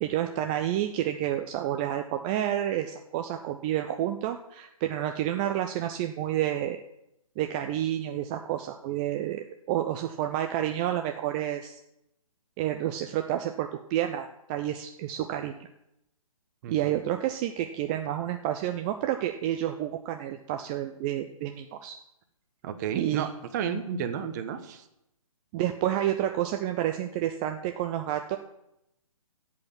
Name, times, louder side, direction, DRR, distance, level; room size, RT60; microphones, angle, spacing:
voice 1, 0.0-6.8 7.4-11.8 12.6-15.5 16.7-21.9 22.9-23.3 25.5-28.4, right 12 dB, 15° right, 6 dB, 0.3 m, -29 dB
voice 2, 22.6-24.8, right 7 dB, 30° right, 8 dB, 1.2 m, -32 dB
10.5 x 7.9 x 7.4 m, 0.85 s
figure-of-eight pair, 140°, 18 cm